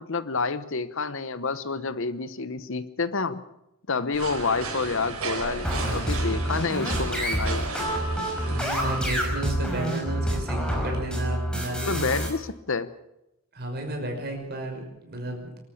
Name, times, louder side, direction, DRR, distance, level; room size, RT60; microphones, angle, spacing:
voice 1, 0.0-3.4 3.9-7.6 8.5-8.6 11.9-12.9, left 4 dB, 60° left, 14 dB, 1.0 m, -29 dB
sound 1, 4.1-9.2, right 3 dB, 85° right, 6.0 m, -34 dB
sound 2, 5.6-12.3, right 1 dB, 5° left, 5.5 m, -27 dB
voice 2, 5.8-6.6 8.4-12.1 13.5-15.5, right 1 dB, 45° right, 2 dB, 5.9 m, -33 dB
25.5 x 13.0 x 8.5 m, 0.90 s
head